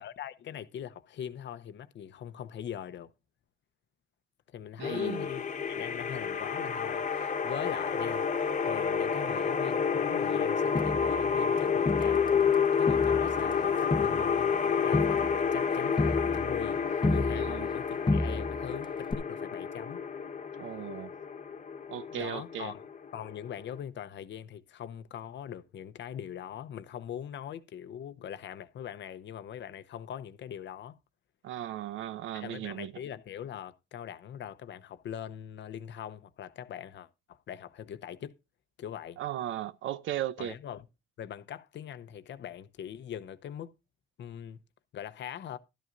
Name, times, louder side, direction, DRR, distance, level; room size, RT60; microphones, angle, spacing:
voice 1, 0.0-3.1 4.5-8.3 8.6-12.3 12.8-20.0 22.1-31.0 32.3-38.3 38.8-39.2 40.4-40.9 41.2-43.7 44.2-44.6 44.9-45.6, left 9 dB, 65° left, 0.8 m, -41 dB
sound 1, 4.8-23.8, left 6 dB, 40° left, 1.3 m, -29 dB
voice 2, 4.8-5.2 17.3-17.7 20.6-21.1 21.9-22.7 31.4-32.9 39.2-40.5, right 12 dB, 80° right, 0.7 m, -36 dB
Crowd, 10.7-12.5 12.9-17.8 18.1-18.7 19.1-19.2, left 2 dB, 20° left, 1.0 m, -32 dB
12.5 x 12.5 x 2.6 m
cardioid pair, 90°, 20 cm